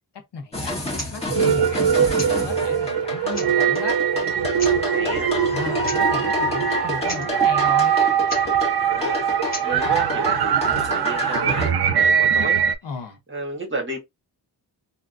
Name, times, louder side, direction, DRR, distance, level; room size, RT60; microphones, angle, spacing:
voice 1, 0.3-1.9 2.3-4.0 5.5-8.0 12.8-13.2, left 5 dB, 75° left, 1.1 m, -35 dB
sound 1, 0.5-11.7, left 2 dB, 15° left, 1.7 m, -29 dB
sound 2, 0.9-1.1 2.1-2.4 3.0-3.1 3.3-3.8 4.5-4.8 5.8-6.0 6.3-6.4 6.7-6.8 7.0-7.3 8.3-8.5 9.5-9.7, left 1 dB, 40° left, 1.8 m, -34 dB
sound 3, 1.2-12.8, right 8 dB, 65° right, 0.6 m, -21 dB
voice 2, 4.9-5.3 8.9-12.6 13.3-14.0, right 2 dB, 30° right, 1.5 m, -32 dB
3.4 x 2.7 x 2.5 m
wide cardioid pair, 90°, 42 cm